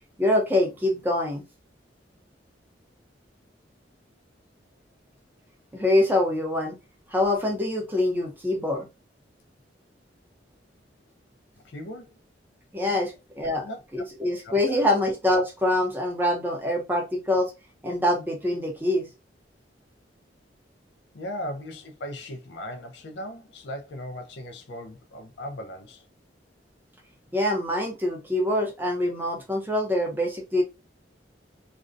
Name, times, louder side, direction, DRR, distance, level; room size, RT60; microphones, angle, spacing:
voice 1, 0.2-1.4 5.7-6.8 7.1-8.9 12.7-13.1 13.4-13.6 13.9-17.5 17.8-19.1 27.3-30.6, left 1 dB, 10° right, 0.6 m, -24 dB
voice 2, 11.6-12.1 12.9-13.0 13.6-13.8 14.4-14.9 21.1-26.1, left 1 dB, 70° left, 0.5 m, -38 dB
2.5 x 2.1 x 2.4 m
head